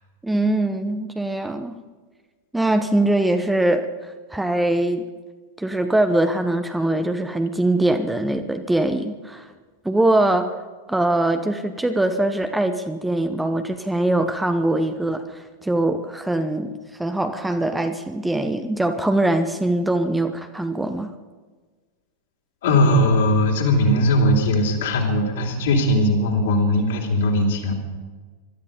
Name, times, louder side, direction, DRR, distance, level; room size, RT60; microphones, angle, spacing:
voice 1, 0.2-1.8 2.5-5.1 5.6-9.4 9.8-10.5 10.9-21.1, right 1 dB, 5° right, 7 dB, 0.9 m, -22 dB
voice 2, 22.6-27.7, left 1 dB, 60° left, 0 dB, 3.5 m, -19 dB
21.0 x 13.0 x 5.2 m, 1.4 s
figure-of-eight pair, 90°, 0 cm